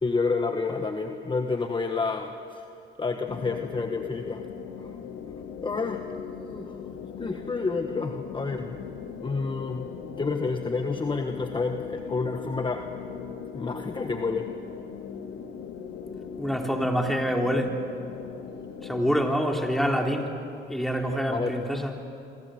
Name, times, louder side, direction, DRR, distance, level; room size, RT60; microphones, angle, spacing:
voice 1, 0.0-2.6 3.0-4.4 4.8-4.9 5.6-6.1 6.5-6.8 7.2-8.8 9.2-9.9 10.2-12.9 13.5-14.5 21.3-21.5, left 4 dB, 25° left, 5 dB, 1.4 m, -29 dB
sound 1, 3.3-19.2, left 7 dB, 85° left, 2.0 m, -39 dB
voice 2, 16.4-17.8 18.8-20.4 20.7-21.9, equal, ahead, 1 dB, 3.5 m, -26 dB
27.0 x 24.0 x 7.9 m, 2.6 s
cardioid pair, 90°, 20 cm